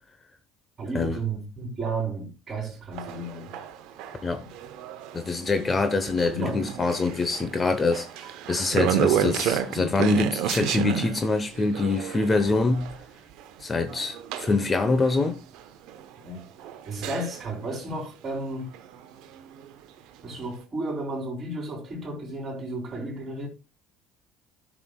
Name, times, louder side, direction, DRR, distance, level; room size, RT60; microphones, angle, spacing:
voice 1, 0.8-3.5 6.3-6.6 16.2-16.4 16.8-18.7 20.2-23.5, right 2 dB, 40° right, 3.5 m, -33 dB
sound 1, 2.9-17.6 18.7-19.9 20.3-20.4, right 10 dB, 70° right, 0.8 m, -32 dB
voice 2, 5.1-12.9 13.6-15.4, left 3 dB, 25° left, 1.0 m, -25 dB
12.5 x 6.2 x 2.3 m
hypercardioid pair, 75°, 0 cm